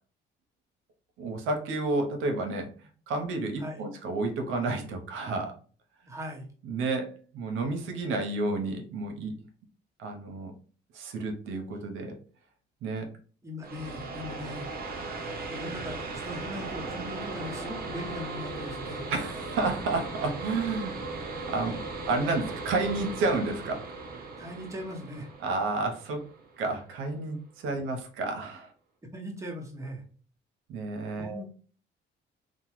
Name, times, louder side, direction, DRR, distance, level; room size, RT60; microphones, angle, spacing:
voice 1, 1.2-2.7 3.1-5.5 6.6-9.3 10.0-10.5 10.9-12.1 12.8-13.1 19.1-21.0 21.2-21.8 22.1-23.9 25.4-26.2 26.6-28.7 30.7-31.4, right 3 dB, 90° right, 4 dB, 0.7 m, -31 dB
voice 2, 6.1-6.5 13.4-14.7 15.5-19.1 24.4-25.3 27.8-27.9 29.1-30.0 31.2-31.5, equal, 15° right, 1 dB, 0.9 m, -39 dB
sound 1, 13.6-27.0, right 3 dB, 50° right, 0.8 m, -38 dB
Wind instrument woodwind instrument, 16.4-20.3, left 2 dB, 20° left, 1.0 m, -48 dB
2.9 x 2.1 x 2.9 m, 0.41 s
cardioid pair, 90°, 20 cm